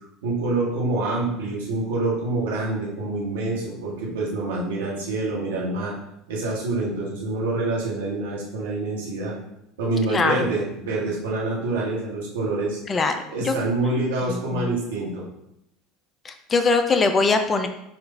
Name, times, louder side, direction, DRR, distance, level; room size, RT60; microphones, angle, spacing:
voice 1, 0.2-6.0 6.3-9.4 9.8-12.8 13.3-15.3, right 2 dB, 75° right, -4 dB, 1.3 m, -26 dB
voice 2, 10.1-10.5 12.9-13.2 13.4-13.6 14.3-14.7 16.2-17.7, left 4 dB, 30° left, 7 dB, 0.5 m, -22 dB
4.4 x 2.5 x 3.9 m, 0.80 s
hypercardioid pair, 75°, 0 cm